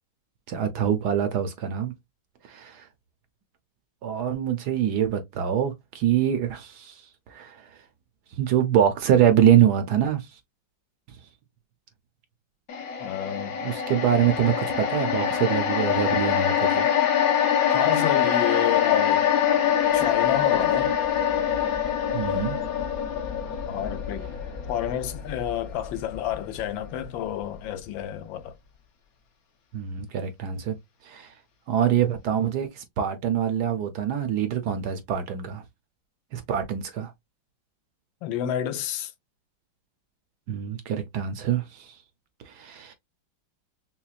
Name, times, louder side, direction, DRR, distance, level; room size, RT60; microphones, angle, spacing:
voice 1, 0.5-1.9 2.5-2.9 4.0-7.0 7.3-7.7 8.4-10.3 13.6-16.9 22.1-22.6 29.7-30.8 31.0-31.3 31.7-35.6 36.3-37.1 40.5-42.0 42.4-42.9, right 9 dB, 70° right, 1.0 m, -24 dB
sound 1, 12.7-27.0 27.4-27.5, left 9 dB, 55° left, 1.1 m, -24 dB
voice 2, 13.0-13.6 17.7-19.3 19.9-20.9 23.7-24.3 24.7-28.6 38.2-39.1, left 10 dB, 80° left, 1.4 m, -29 dB
5.7 x 2.1 x 2.4 m
omnidirectional pair, 2.1 m